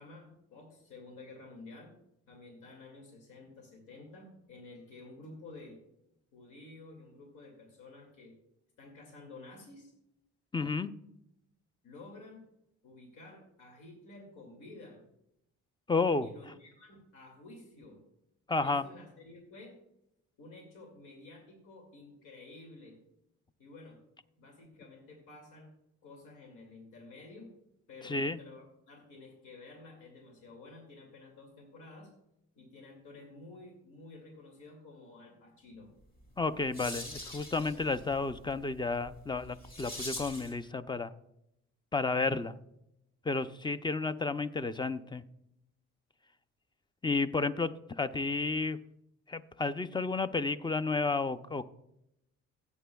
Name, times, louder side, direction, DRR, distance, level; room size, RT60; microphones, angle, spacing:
voice 1, 0.0-2.0 2.3-5.8 6.3-8.3 8.8-9.9 11.8-12.4 12.8-15.0 16.2-18.0 18.6-19.8 20.4-23.0 23.6-24.0 24.4-25.7 26.0-27.5 27.9-32.1 32.6-35.9, left 2 dB, 85° left, 1 dB, 2.4 m, -51 dB
voice 2, 10.5-10.9 15.9-16.3 18.5-18.8 28.0-28.4 36.4-41.1 41.9-42.6 43.2-45.2 47.0-48.8 49.3-51.7, left 3 dB, 15° left, 14 dB, 0.5 m, -32 dB
sound 1, 36.2-40.6, left 1 dB, 30° left, 3.1 m, -44 dB
16.5 x 8.2 x 2.3 m, 0.83 s
cardioid pair, 90°, 30 cm